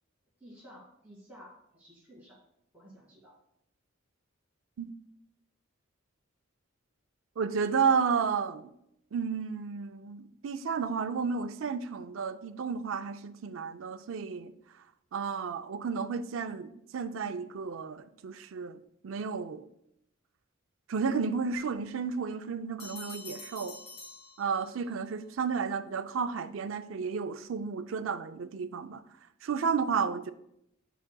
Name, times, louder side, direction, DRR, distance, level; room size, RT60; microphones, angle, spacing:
voice 1, 0.4-2.4 2.7-3.3, equal, 5° right, -6 dB, 2.3 m, -53 dB
voice 2, 7.4-8.7 9.1-14.5 15.1-19.7 20.9-23.8 24.4-29.0 29.4-30.3, right 5 dB, 70° right, 11 dB, 0.4 m, -32 dB
sound 1, 22.8-25.0, left 3 dB, 50° left, 2.8 m, -46 dB
9.1 x 5.8 x 2.2 m, 0.77 s
head